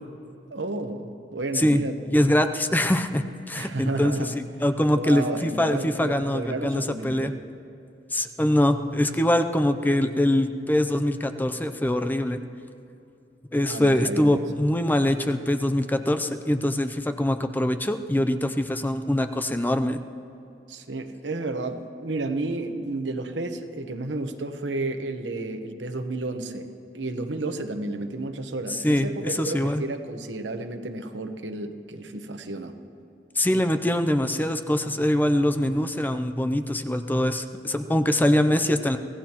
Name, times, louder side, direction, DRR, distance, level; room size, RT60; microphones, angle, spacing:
voice 1, 0.5-1.9 3.6-4.4 4.9-7.4 13.6-14.4 20.7-26.7 26.9-32.7, right 2 dB, 80° right, 6 dB, 1.1 m, -32 dB
voice 2, 2.1-4.3 4.6-7.3 8.1-12.4 13.5-20.0 28.7-29.8 33.4-39.0, left 1 dB, 10° left, 8 dB, 0.5 m, -23 dB
25.0 x 17.0 x 3.0 m, 2.8 s
head